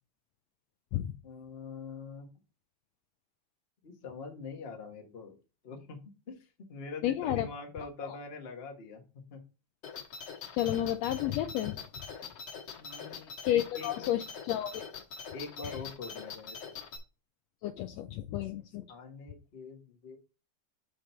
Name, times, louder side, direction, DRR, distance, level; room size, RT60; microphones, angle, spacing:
voice 1, 1.2-2.3 3.8-5.4 5.6-6.0 6.3-9.0 9.3-9.4 12.8-14.2 15.3-16.8 18.9-20.2, left 4 dB, 35° left, 2 dB, 1.0 m, -44 dB
voice 2, 7.0-7.5 8.0-8.1 10.5-11.8 13.4-14.8 15.6-15.7 17.6-18.8, left 12 dB, 80° left, 9 dB, 1.6 m, -31 dB
sound 1, 9.8-17.0, left 6 dB, 50° left, 1.9 m, -43 dB
7.1 x 5.1 x 4.4 m, 0.32 s
omnidirectional pair, 3.3 m